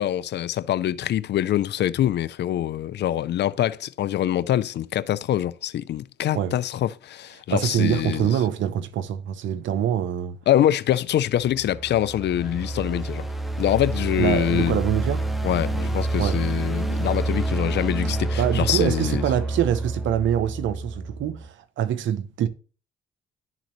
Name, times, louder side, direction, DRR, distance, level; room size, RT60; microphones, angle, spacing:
voice 1, 0.0-8.3 10.5-13.3 13.6-14.8 15.4-19.2, left 12 dB, 55° left, 0.5 m, -24 dB
voice 2, 7.5-10.4 14.2-15.3 16.2-16.4 18.4-22.5, right 10 dB, 65° right, 0.7 m, -24 dB
sound 1, 11.3-21.5, right 2 dB, ahead, 1.0 m, -28 dB
11.5 x 3.9 x 3.0 m
hypercardioid pair, 55°, 21 cm